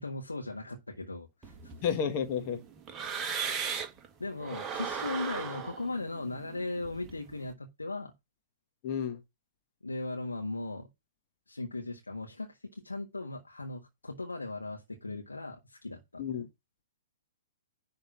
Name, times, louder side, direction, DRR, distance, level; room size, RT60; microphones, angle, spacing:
voice 1, 0.0-1.7 4.2-8.1 9.8-10.9 11.5-16.4, left 2 dB, 80° left, 1.7 m, -38 dB
sound 1, 1.4-4.1 4.4-7.5, right 6 dB, 15° right, 1.5 m, -38 dB
voice 2, 1.8-2.6 8.8-9.2 16.2-16.5, left 7 dB, 35° left, 1.4 m, -31 dB
11.0 x 3.8 x 6.0 m
figure-of-eight pair, 115°, 0 cm